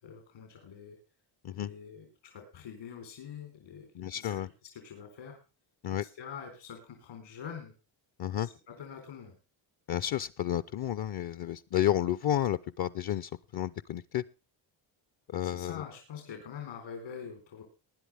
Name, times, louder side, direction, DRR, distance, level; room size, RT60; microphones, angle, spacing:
voice 1, 0.0-1.0 1.5-5.4 6.2-7.7 8.4-9.4 15.4-17.6, left 7 dB, 85° left, 3 dB, 4.2 m, -45 dB
voice 2, 3.9-4.5 5.8-6.0 8.2-8.5 9.9-14.2 15.3-15.8, left 11 dB, 55° left, 14 dB, 0.6 m, -31 dB
20.0 x 10.0 x 3.4 m, 0.30 s
cardioid pair, 105°, 46 cm